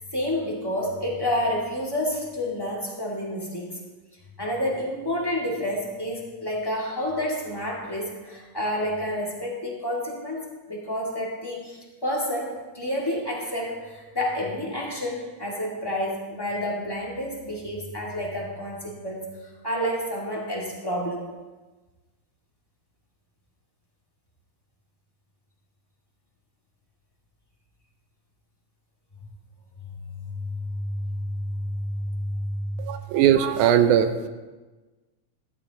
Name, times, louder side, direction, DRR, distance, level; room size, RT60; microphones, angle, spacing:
voice 1, 0.1-3.8 4.4-19.2 19.6-21.3 29.8-32.9, left 1 dB, 10° left, -4 dB, 1.4 m, -29 dB
voice 2, 32.8-34.3, right 9 dB, 80° right, 9 dB, 2.1 m, -20 dB
13.0 x 12.5 x 2.9 m, 1.2 s
omnidirectional pair, 3.5 m